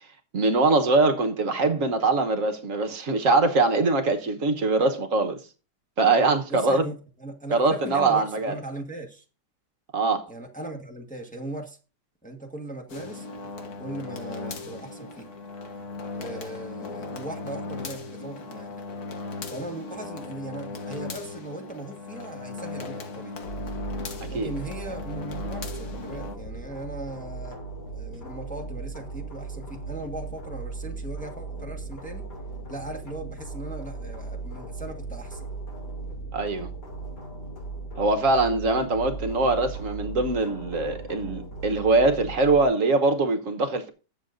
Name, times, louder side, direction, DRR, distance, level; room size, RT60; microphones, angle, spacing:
voice 1, 0.3-5.4 6.0-6.8 7.5-8.5 9.9-10.3 24.2-24.5 36.3-36.7 38.0-43.9, right 3 dB, 55° right, 1.4 m, -23 dB
voice 2, 6.5-9.2 10.3-11.8 12.2-13.3 13.8-15.3 16.1-18.7 19.5-23.4 24.2-27.6 27.9-32.3 32.7-35.5, right 2 dB, 5° left, 1.4 m, -38 dB
sound 1, 12.9-26.4, left 4 dB, 65° left, 1.8 m, -37 dB
sound 2, 23.4-42.7, right 3 dB, 80° left, 3.4 m, -37 dB
20.0 x 7.3 x 2.6 m
omnidirectional pair, 1.8 m